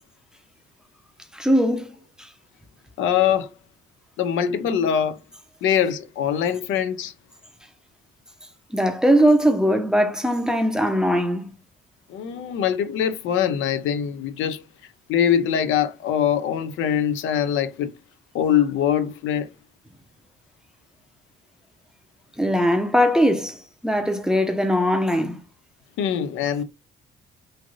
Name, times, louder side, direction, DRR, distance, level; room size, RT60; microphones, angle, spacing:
voice 1, 1.3-1.9 8.7-11.5 22.4-25.4, equal, 5° right, 0.6 m, -20 dB
voice 2, 3.0-3.5 4.2-5.2 5.6-7.1 12.1-14.6 15.1-17.9 18.3-19.5 26.0-26.6, left 9 dB, 85° left, 0.5 m, -23 dB
3.2 x 2.5 x 2.4 m
cardioid pair, 90°, 20 cm